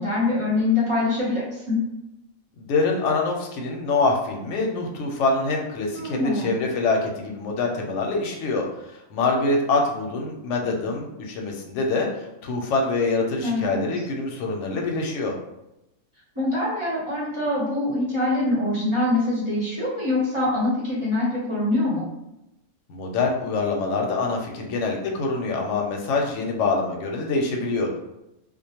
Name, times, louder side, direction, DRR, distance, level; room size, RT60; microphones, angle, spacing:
voice 1, 0.0-1.8 5.9-6.5 13.4-13.9 16.3-22.1, left 2 dB, 25° right, -8 dB, 0.8 m, -24 dB
voice 2, 2.6-15.4 22.9-28.0, left 3 dB, 70° left, 1 dB, 0.8 m, -25 dB
2.3 x 2.1 x 2.8 m, 0.89 s
omnidirectional pair, 1.5 m